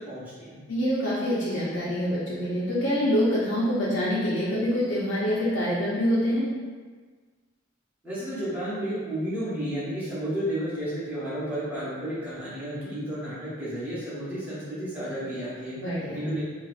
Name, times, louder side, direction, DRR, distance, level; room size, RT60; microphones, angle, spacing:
voice 1, 0.0-0.6 8.0-15.8 16.1-16.4, equal, 10° right, -11 dB, 0.9 m, -32 dB
voice 2, 0.7-6.5 15.8-16.2, equal, 75° left, -8 dB, 0.6 m, -25 dB
3.8 x 2.3 x 2.4 m, 1.5 s
head